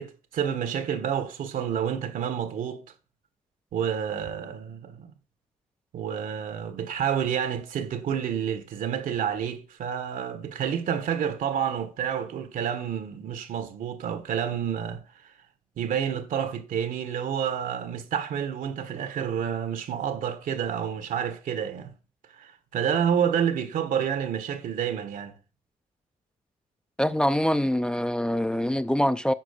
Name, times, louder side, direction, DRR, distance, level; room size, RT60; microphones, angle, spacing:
voice 1, 0.0-2.8 3.7-5.1 5.9-15.3 15.8-21.9 22.3-25.4, right 8 dB, 80° right, 1.5 m, -29 dB
voice 2, 27.0-29.3, equal, 5° left, 0.5 m, -24 dB
10.0 x 4.7 x 6.8 m
cardioid pair, 95°, 14 cm